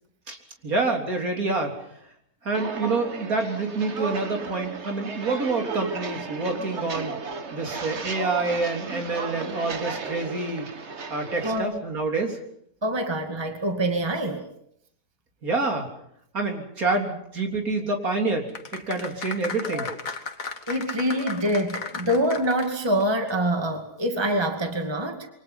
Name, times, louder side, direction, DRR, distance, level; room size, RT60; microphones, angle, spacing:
voice 1, 0.6-1.8 2.4-7.2 7.5-10.7 11.1-12.4 15.4-15.9 16.3-19.9, right 3 dB, 60° right, 3 dB, 4.0 m, -27 dB
Walk footsteps, 2.5-11.6, right 4 dB, 45° right, 1.7 m, -34 dB
voice 2, 11.4-11.8 12.8-14.4 20.7-25.3, right 1 dB, 15° right, 5 dB, 2.3 m, -25 dB
sound 1, 18.5-23.0 23.3-23.4, left 4 dB, 55° left, 2.2 m, -35 dB
28.0 x 24.0 x 5.7 m, 0.69 s
omnidirectional pair, 1.7 m